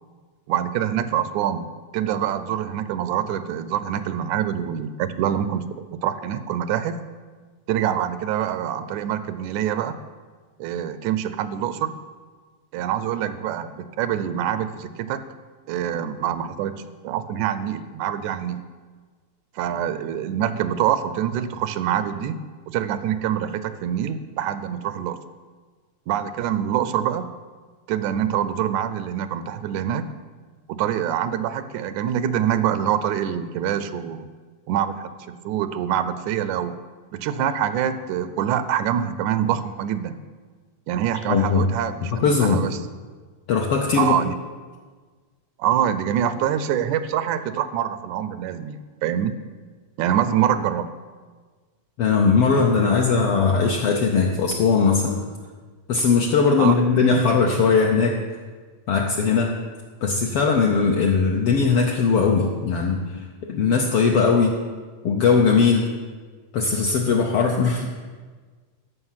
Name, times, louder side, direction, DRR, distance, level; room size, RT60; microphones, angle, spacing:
voice 1, 0.5-1.7 1.9-7.0 7.7-10.0 10.6-11.9 12.7-15.2 15.7-16.7 17.0-18.6 19.6-22.4 22.7-25.2 26.1-27.3 27.9-30.1 30.7-34.3 34.7-36.7 37.1-40.2 40.9-42.8 44.0-44.3 45.6-49.3 50.0-50.9 56.6-56.7, right 10 dB, 90° right, 12 dB, 2.0 m, -25 dB
voice 2, 41.3-41.6 42.1-42.6 43.5-44.1 52.0-55.2 55.9-58.2 58.9-59.5 60.0-63.2 63.5-64.6 65.0-65.9 66.5-67.9, left 5 dB, 75° left, 1 dB, 1.3 m, -19 dB
13.5 x 5.6 x 5.8 m, 1.5 s
omnidirectional pair, 3.3 m